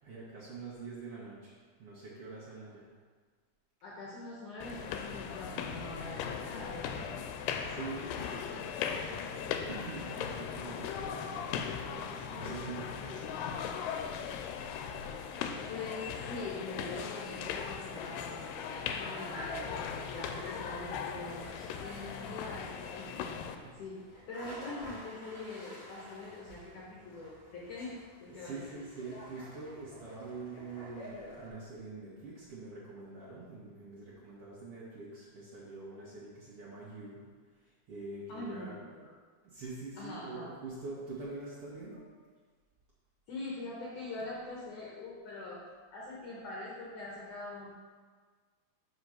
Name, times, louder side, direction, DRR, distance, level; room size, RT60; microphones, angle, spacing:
voice 1, 0.0-2.9 7.6-13.7 23.6-23.7 28.3-38.8 39.4-42.0, right 3 dB, 75° right, -8 dB, 1.3 m, -45 dB
voice 2, 3.8-7.3 15.7-19.6 20.0-23.2 23.8-28.0 28.2-28.7 38.3-39.1 40.0-40.5 43.3-45.7 45.9-47.7, left 2 dB, 70° left, -5 dB, 2.0 m, -43 dB
sound 1, 4.6-23.6, left 7 dB, 85° left, 2.6 m, -38 dB
sound 2, 14.5-31.5, equal, 50° left, 2.2 m, -50 dB
5.6 x 5.5 x 6.2 m, 1.5 s
omnidirectional pair, 4.7 m